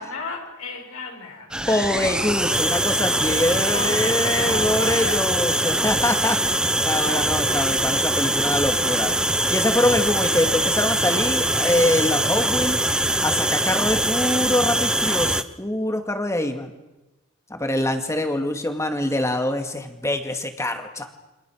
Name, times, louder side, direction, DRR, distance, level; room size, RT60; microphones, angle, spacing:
voice 1, 0.0-1.7 3.6-5.3, left 3 dB, 75° left, 1 dB, 6.4 m, -33 dB
sound 1, 1.5-15.4, right 1 dB, 5° right, 0.8 m, -22 dB
voice 2, 1.7-9.1 9.5-12.8 13.2-16.7 17.5-21.1, left 1 dB, 15° left, 6 dB, 2.3 m, -24 dB
29.0 x 25.0 x 6.4 m, 1.0 s
head